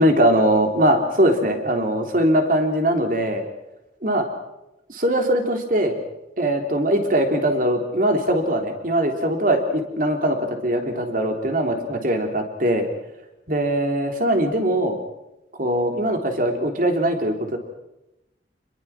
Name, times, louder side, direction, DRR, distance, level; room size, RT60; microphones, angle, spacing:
voice 1, 0.0-3.4 4.0-4.3 4.9-6.0 6.4-12.9 13.5-15.0 15.6-17.6, right 1 dB, 50° right, 4 dB, 3.5 m, -21 dB
28.0 x 21.5 x 6.0 m, 0.91 s
head